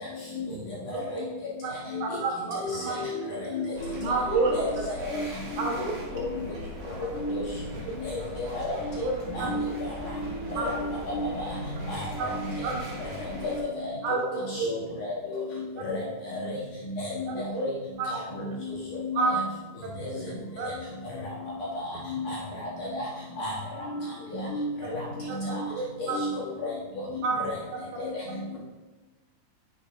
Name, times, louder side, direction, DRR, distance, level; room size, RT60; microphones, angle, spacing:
voice 1, 0.5-0.9 2.7-3.1 5.3-5.5 7.6-7.8 14.6-14.9 18.4-18.6 20.0-20.4 21.9-22.0 22.3-22.4 25.2-25.3 27.1-27.5 28.1-28.2, right 6 dB, 90° right, 2 dB, 3.3 m, -46 dB
voice 2, 2.0-3.1 4.0-5.2 5.6-5.9 9.0-9.1 9.4-9.5 10.6-10.7 12.6-12.8 14.0-14.7 17.3-17.7 18.0-18.1 19.2-19.3 20.6-20.7 25.3-25.4 25.7-26.2 27.2-27.4, right 3 dB, 70° right, -2 dB, 3.0 m, -29 dB
voice 3, 2.6-3.2 3.5-3.9 4.2-4.4 5.1-5.2 5.8-5.9 6.1-6.3 7.2-7.4 8.5-8.9 9.3-9.7 10.5-11.5 11.9-12.3 14.1-14.2 14.5-15.4 15.8-16.0 16.3-16.5 16.8-17.7 18.1-18.5 19.0-19.3 20.0-20.1 21.8-22.4 22.9-23.0 23.4-23.5 23.9-24.0 24.3-25.0 25.3-25.6 26.0-26.3 26.6-26.7 28.0-28.1, left 2 dB, 65° left, -6 dB, 2.1 m, -32 dB
sound 1, 3.7-13.6, equal, 50° right, 2.7 m, -40 dB
9.0 x 7.1 x 2.5 m, 1.2 s
omnidirectional pair, 4.9 m